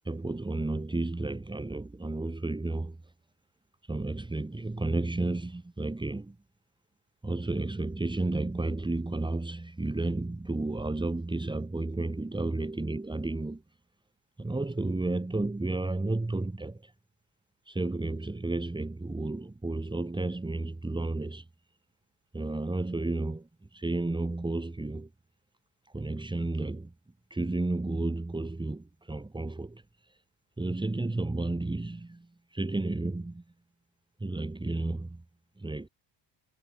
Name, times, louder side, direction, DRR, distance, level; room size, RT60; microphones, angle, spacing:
voice 1, 0.0-3.0 3.8-6.4 7.2-13.6 14.4-16.9 17.6-21.5 22.3-25.1 25.8-26.9 27.3-30.2 30.6-33.4 34.2-35.2 35.6-35.9, right 2 dB, 10° right, 3.2 m, -32 dB
cardioid pair, 145°, 48 cm